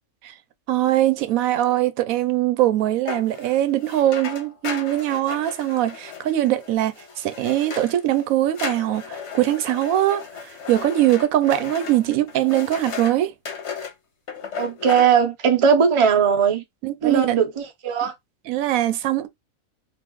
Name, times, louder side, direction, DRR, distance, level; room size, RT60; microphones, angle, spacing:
voice 1, 0.7-10.2 10.7-13.3 16.8-17.4 18.5-19.3, right 13 dB, 80° right, 1.0 m, -21 dB
sound 1, 3.1-8.3 8.5-13.1 13.5-13.9 14.3-15.1, left 6 dB, 60° left, 1.1 m, -35 dB
voice 2, 14.6-16.6 17.0-18.1, right 7 dB, 35° right, 0.5 m, -19 dB
3.8 x 2.5 x 3.0 m
omnidirectional pair, 1.4 m